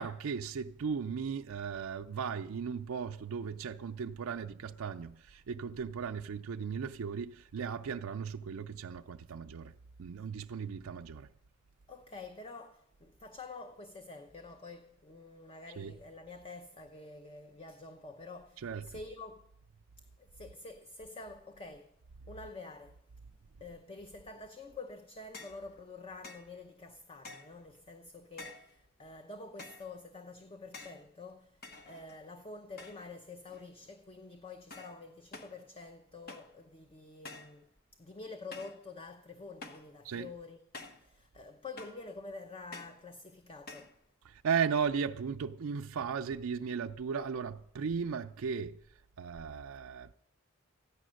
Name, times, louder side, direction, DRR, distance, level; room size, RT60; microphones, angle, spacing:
voice 1, 0.0-9.7 10.0-11.3 15.8-16.0 18.6-19.0 40.0-40.3 44.2-48.8 49.2-50.1, right 6 dB, 85° right, 0.4 m, -36 dB
voice 2, 11.9-19.4 20.0-21.9 22.3-23.0 23.6-40.6 40.9-43.9, left 3 dB, 25° left, 0.7 m, -48 dB
sound 1, 25.3-25.6 26.2-26.5 27.2-27.6 28.4-28.7 29.6-29.9 30.7-31.1 31.6-32.3 32.8-33.2 33.5-33.9 34.7-35.0 35.3-35.6 36.3-36.6 37.2-37.6 38.5-38.8 39.6-39.9 40.7-41.1 41.8-42.1 42.7-43.0 43.7-44.0, left 3 dB, 45° left, 1.1 m, -49 dB
14.0 x 10.0 x 6.3 m
head